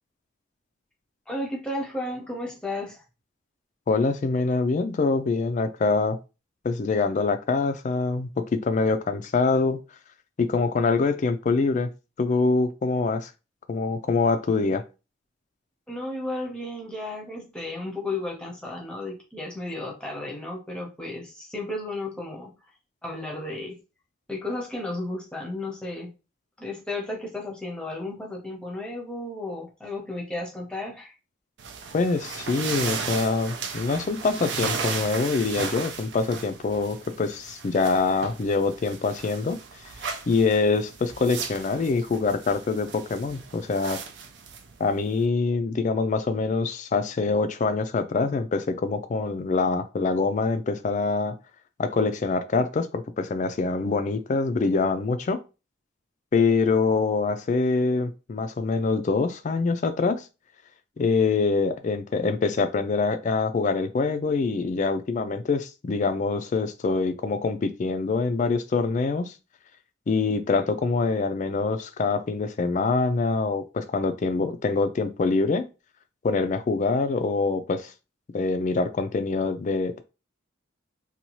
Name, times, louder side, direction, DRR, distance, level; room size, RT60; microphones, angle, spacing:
voice 1, 1.3-3.0 15.9-22.5 23.0-23.8 24.3-26.1 26.6-31.1, left 2 dB, 5° left, 0.7 m, -33 dB
voice 2, 3.9-6.2 6.6-9.8 10.4-11.9 12.2-13.3 13.7-14.8 31.9-39.6 40.3-44.0 44.8-51.4 51.8-55.4 56.3-60.2 61.0-69.3 70.1-75.7 76.2-77.9 78.3-80.0, left 4 dB, 40° left, 0.3 m, -25 dB
sound 1, 31.6-45.2, right 5 dB, 60° right, 0.4 m, -36 dB
2.7 x 2.3 x 3.0 m
head